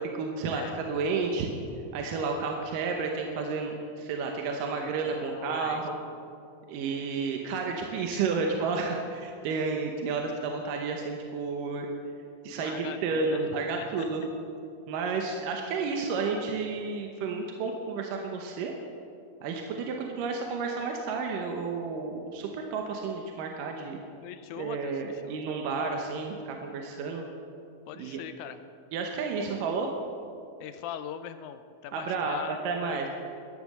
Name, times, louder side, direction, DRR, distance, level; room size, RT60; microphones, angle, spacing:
voice 1, 0.0-1.5 1.9-5.9 6.7-11.9 12.4-14.2 14.9-18.7 19.4-24.0 24.5-27.2 27.9-28.2 28.9-29.9 31.9-32.4 32.6-33.1, right 4 dB, 85° right, 2 dB, 2.6 m, -31 dB
voice 2, 4.5-5.8 6.1-6.2 7.9-8.2 12.6-13.4 13.8-14.1 24.2-25.4 25.8-26.0 27.9-28.6 30.6-33.1, left 10 dB, 80° left, 10 dB, 1.9 m, -41 dB
14.0 x 10.5 x 6.7 m, 2.5 s
omnidirectional pair, 3.8 m